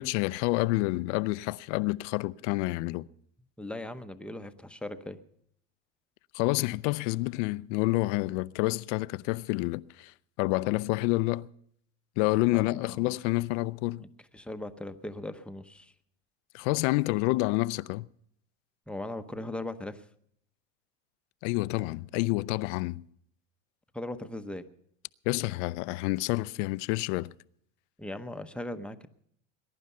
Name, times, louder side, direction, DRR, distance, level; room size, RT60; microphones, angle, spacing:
voice 1, 0.0-3.1 6.3-11.5 12.2-14.0 16.5-18.1 21.4-23.0 25.3-27.3, left 21 dB, 65° left, 0.5 m, -28 dB
voice 2, 3.6-5.2 12.5-13.2 14.0-14.1 14.3-15.9 18.9-20.0 23.9-24.6 28.0-29.1, left 1 dB, 5° left, 0.8 m, -39 dB
20.5 x 11.0 x 5.5 m
supercardioid pair, 105°, 39 cm